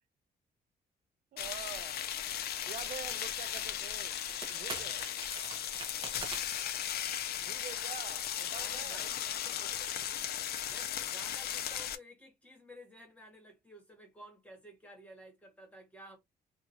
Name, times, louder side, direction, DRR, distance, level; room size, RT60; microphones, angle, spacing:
voice 1, 1.3-2.0 2.7-4.2 4.5-5.0 7.4-9.1, right 9 dB, 55° right, 0.4 m, -46 dB
sound 1, 1.4-12.0, left 10 dB, 70° left, 0.4 m, -37 dB
sound 2, 2.9-3.3 3.6-3.7 4.2-6.6, right 3 dB, 30° right, 0.8 m, -44 dB
voice 2, 8.5-10.2 10.6-16.2, equal, 10° left, 1.4 m, -54 dB
2.8 x 2.4 x 2.7 m
cardioid pair, 140°, 17 cm